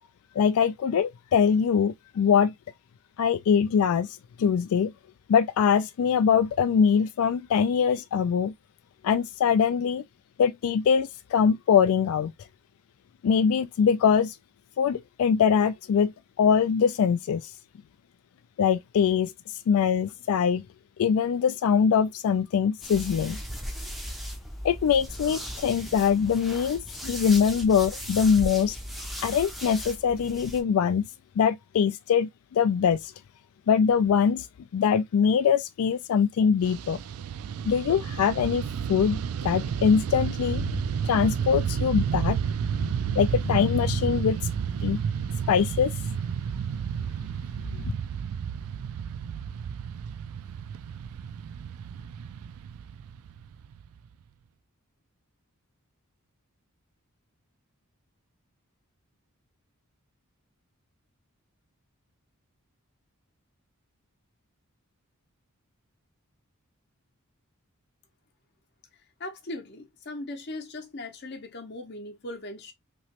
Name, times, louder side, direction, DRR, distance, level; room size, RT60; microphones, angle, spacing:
voice 1, 0.4-2.5 3.2-4.1 4.4-4.9 5.3-8.5 9.0-10.0 10.4-12.3 13.2-14.3 14.8-16.1 16.4-17.4 18.6-19.3 19.7-20.6 21.0-23.4 24.6-28.8 29.2-31.1 31.4-33.1 33.7-34.5 34.7-37.0 37.7-40.7 41.0-42.4 43.1-44.4 44.8-45.0 45.5-45.9 47.7-47.8, left 7 dB, 75° left, 0.3 m, -23 dB
sound 1, 22.8-30.6, equal, ahead, 0.5 m, -37 dB
Fixed-wing aircraft airplane, 36.6-54.1, right 7 dB, 75° right, 0.3 m, -31 dB
voice 2, 69.2-72.7, left 2 dB, 50° left, 0.8 m, -38 dB
3.1 x 2.9 x 2.9 m
head